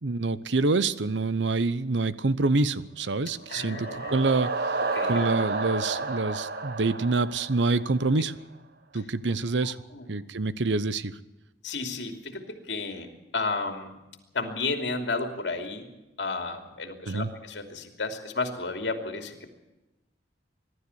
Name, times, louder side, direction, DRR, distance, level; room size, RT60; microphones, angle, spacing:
voice 1, 0.0-4.5 5.1-8.3 8.9-9.8 10.1-11.1 17.1-17.3, right 3 dB, 80° right, 16 dB, 0.9 m, -26 dB
sound 1, 3.3-8.2, right 3 dB, 60° right, 1.4 m, -31 dB
voice 2, 3.5-4.3 4.9-5.3 9.6-10.1 11.6-13.1 13.3-13.9 14.3-15.9 16.2-19.5, left 3 dB, 70° left, 5 dB, 2.9 m, -32 dB
21.5 x 12.5 x 9.7 m, 1.0 s
head